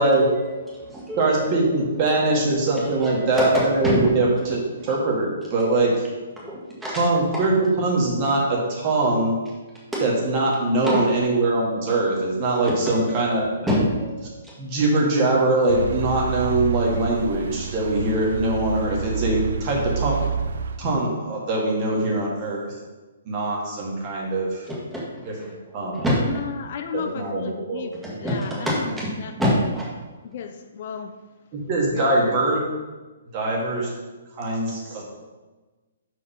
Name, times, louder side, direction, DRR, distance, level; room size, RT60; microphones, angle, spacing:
voice 1, 0.2-4.4 6.4-7.0 10.8-11.1 12.6-14.5 24.7-26.2 28.0-29.9, equal, 5° right, -6 dB, 1.7 m, -27 dB
voice 2, 1.2-6.0 6.9-9.4 10.0-13.5 14.6-20.2 20.8-22.7 23.3-24.7 25.3-25.4 25.7-26.0 26.9-27.9 31.5-32.6 33.3-33.9 34.3-35.0, right 2 dB, 30° right, -3 dB, 1.7 m, -22 dB
sound 1, 15.7-20.8, right 7 dB, 65° right, 0.5 m, -29 dB
voice 3, 26.1-29.3 30.2-31.2 31.9-32.4, left 7 dB, 45° left, 7 dB, 0.4 m, -34 dB
5.4 x 4.9 x 5.5 m, 1.2 s
hypercardioid pair, 165°, 0 cm